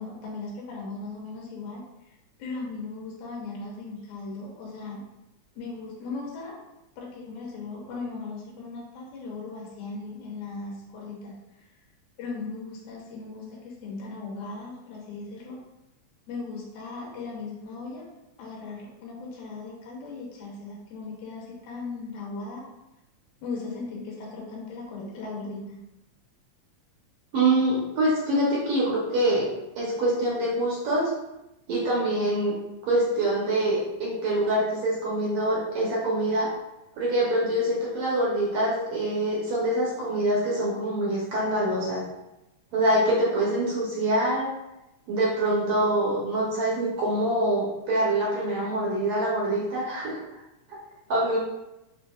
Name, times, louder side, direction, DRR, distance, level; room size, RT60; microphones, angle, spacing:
voice 1, 0.0-1.8 2.4-5.0 5.6-6.5 7.0-11.6 12.2-15.6 16.3-18.1 18.4-22.6 23.4-25.8, left 3 dB, 80° left, -4 dB, 2.4 m, -37 dB
voice 2, 27.3-29.4 29.8-31.1 31.7-32.6 32.8-36.5 37.0-42.0 42.7-44.5 45.1-50.2 51.1-51.4, right 1 dB, 65° right, -6 dB, 1.6 m, -25 dB
6.2 x 2.6 x 2.3 m, 0.94 s
omnidirectional pair, 3.4 m